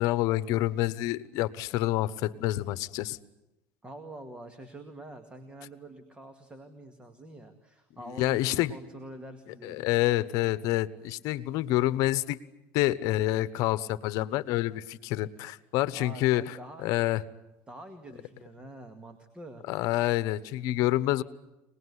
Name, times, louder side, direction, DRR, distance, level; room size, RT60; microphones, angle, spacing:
voice 1, 0.0-3.2 8.2-8.7 9.6-12.4 12.7-16.5 16.8-17.2 19.7-21.2, left 16 dB, 65° left, 16 dB, 1.0 m, -27 dB
voice 2, 3.8-10.1 15.9-16.9 17.7-19.6, right 1 dB, 15° right, 6 dB, 2.1 m, -46 dB
25.0 x 20.0 x 9.8 m, 0.96 s
supercardioid pair, 120°, 6 cm